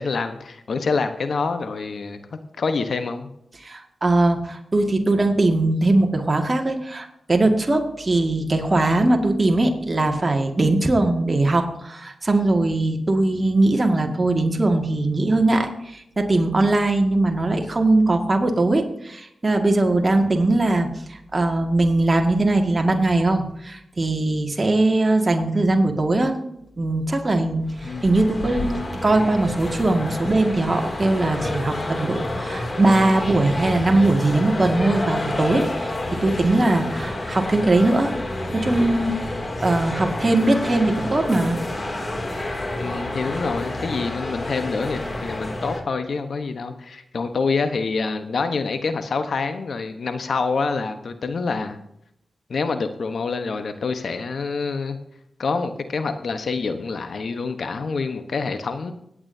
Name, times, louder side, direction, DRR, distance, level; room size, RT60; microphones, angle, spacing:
voice 1, 0.0-2.2 2.6-3.3 27.8-28.1 30.2-30.3 42.8-51.8 52.5-55.0 55.4-58.9, left 4 dB, 70° left, 9 dB, 1.1 m, -26 dB
voice 2, 3.6-26.3 26.8-38.1 38.5-39.1 39.6-41.6, right 2 dB, 40° right, 3 dB, 2.0 m, -20 dB
sound 1, 27.6-45.8, left 1 dB, 40° left, 2.7 m, -29 dB
24.5 x 8.7 x 2.8 m, 0.77 s
cardioid pair, 45°, 0 cm